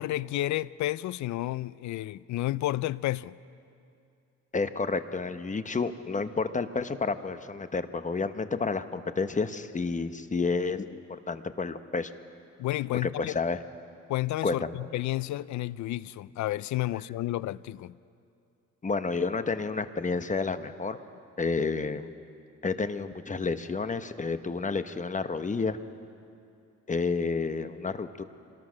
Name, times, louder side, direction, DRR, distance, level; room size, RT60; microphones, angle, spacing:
voice 1, 0.0-3.3 12.6-13.4 14.1-18.0, left 15 dB, 70° left, 0.5 m, -31 dB
voice 2, 4.5-12.1 13.0-13.6 14.4-14.8 18.8-21.0 21.4-22.1 22.6-25.8 26.9-28.2, left 4 dB, 25° left, 1.0 m, -30 dB
26.0 x 19.5 x 6.3 m
cardioid pair, 90°, 30 cm